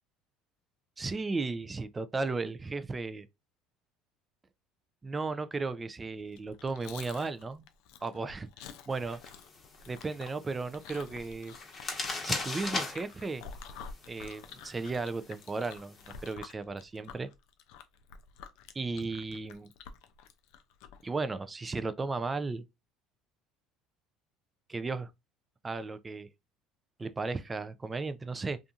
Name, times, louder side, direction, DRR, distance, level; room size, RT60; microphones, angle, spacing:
voice 1, 1.0-3.3 5.0-7.7 8.0-9.2 9.9-11.5 12.2-13.4 14.1-17.3 18.7-19.7 21.0-22.6 24.7-25.1 25.6-26.3 27.0-28.6, right 3 dB, 20° right, 0.3 m, -35 dB
Chewing mastication, 6.3-21.1, left 6 dB, 75° left, 0.4 m, -49 dB
sound 1, 8.9-16.3, left 3 dB, 30° left, 1.1 m, -41 dB
2.6 x 2.4 x 2.4 m
supercardioid pair, 85°, 0 cm